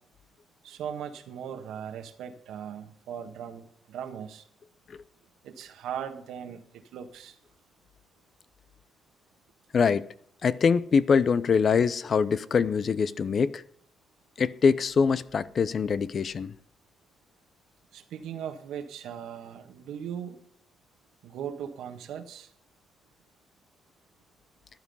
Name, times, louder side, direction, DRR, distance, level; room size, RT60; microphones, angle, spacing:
voice 1, 0.6-4.4 5.4-7.4 17.9-20.4 21.2-22.5, right 8 dB, 85° right, 1.6 m, -39 dB
voice 2, 9.7-10.1 10.4-13.6 14.4-16.5, left 6 dB, 50° left, 0.7 m, -24 dB
14.5 x 10.0 x 5.6 m
cardioid pair, 90°, 0 cm